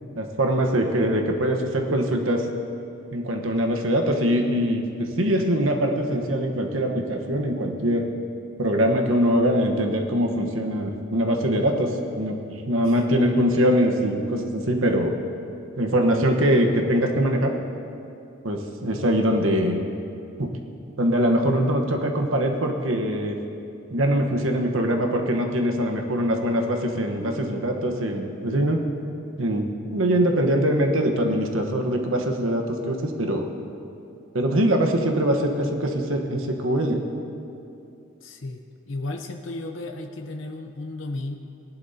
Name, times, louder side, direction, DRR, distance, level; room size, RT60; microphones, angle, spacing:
voice 1, 0.1-2.5 3.1-8.1 8.6-12.4 12.6-15.1 15.8-17.5 18.4-19.8 20.4-20.5 21.0-23.3 23.9-28.8 29.4-33.5 34.3-37.0, equal, 85° right, 3 dB, 1.2 m, -23 dB
voice 2, 38.2-41.4, left 2 dB, 75° left, 4 dB, 0.8 m, -34 dB
19.0 x 11.0 x 2.8 m, 2.6 s
head